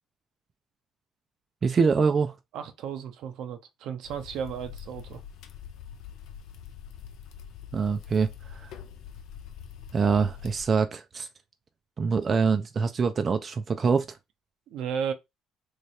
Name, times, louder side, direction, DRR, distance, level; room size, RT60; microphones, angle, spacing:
voice 1, 1.6-2.3 7.7-8.7 9.9-11.3 12.0-14.2, right 5 dB, 35° right, 0.4 m, -25 dB
voice 2, 2.5-5.2 14.7-15.1, right 7 dB, 70° right, 0.7 m, -34 dB
sound 1, 4.0-10.7, left 8 dB, 75° left, 0.5 m, -44 dB
3.2 x 2.2 x 4.2 m
cardioid pair, 95°, 0 cm